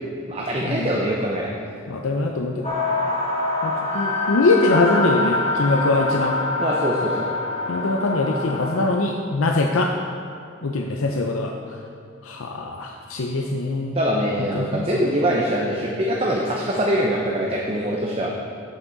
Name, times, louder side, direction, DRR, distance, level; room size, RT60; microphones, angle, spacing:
voice 1, 0.3-1.5 6.6-7.3 13.9-18.3, equal, 30° right, -2 dB, 0.7 m, -23 dB
voice 2, 1.9-3.1 3.6-6.4 7.7-9.9 10.6-11.8 12.2-14.0 14.4-14.9, left 2 dB, 85° left, 2 dB, 0.6 m, -23 dB
sound 1, 2.6-8.9, left 2 dB, 30° left, 1.6 m, -25 dB
14.0 x 6.1 x 4.0 m, 2.4 s
head